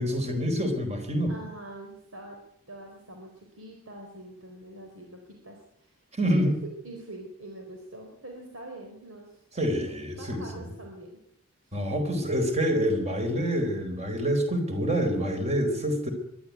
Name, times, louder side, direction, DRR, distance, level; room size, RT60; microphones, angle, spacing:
voice 1, 0.0-1.3 6.2-6.6 9.6-10.6 11.7-16.1, equal, 30° right, 5 dB, 4.2 m, -27 dB
voice 2, 1.3-2.4 2.7-6.5 6.8-9.4 9.8-11.2 11.6-11.7, right 1 dB, 75° right, 2 dB, 4.4 m, -44 dB
23.0 x 12.5 x 9.4 m, 0.73 s
head